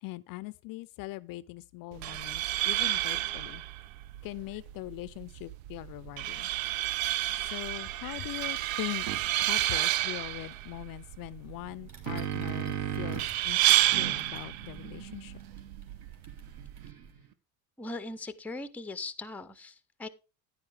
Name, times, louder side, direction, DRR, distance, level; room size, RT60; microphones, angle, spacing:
voice 1, 0.0-3.6 4.2-6.5 7.5-9.1 9.4-15.4, left 19 dB, 50° left, 0.4 m, -41 dB
sound 1, 1.9-16.9, right 15 dB, 75° right, 0.6 m, -31 dB
sound 2, 9.1-9.2 11.6-13.4 13.9-17.3, right 9 dB, 55° right, 1.1 m, -38 dB
sound 3, 11.9-17.1, right 4 dB, 35° right, 3.2 m, -55 dB
voice 2, 17.8-20.1, left 2 dB, 5° left, 0.5 m, -39 dB
9.8 x 9.5 x 3.4 m
supercardioid pair, 105°, 44 cm